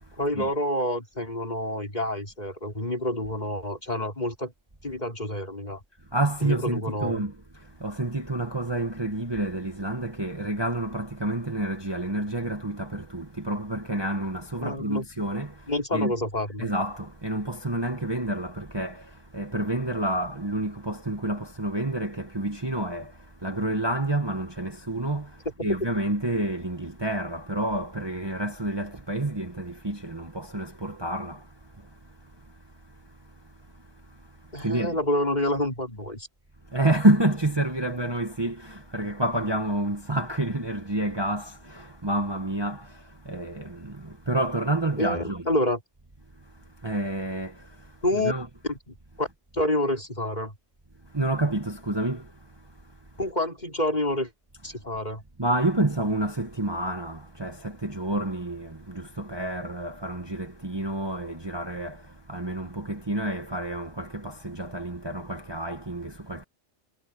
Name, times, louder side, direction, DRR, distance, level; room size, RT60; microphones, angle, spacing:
voice 1, 0.2-4.5 4.8-5.8 6.4-7.3 14.6-15.0 15.7-16.7 34.5-36.3 45.0-45.8 48.0-48.3 48.7-49.3 49.5-50.5 53.2-54.3 54.6-55.2, left 1 dB, 35° left, 5.8 m, -28 dB
voice 2, 6.1-15.6 15.9-16.1 16.6-31.5 34.6-35.0 36.7-45.5 46.8-47.7 48.1-48.5 51.1-52.3 55.4-66.4, right 1 dB, 20° right, 1.5 m, -29 dB
omnidirectional pair, 1.3 m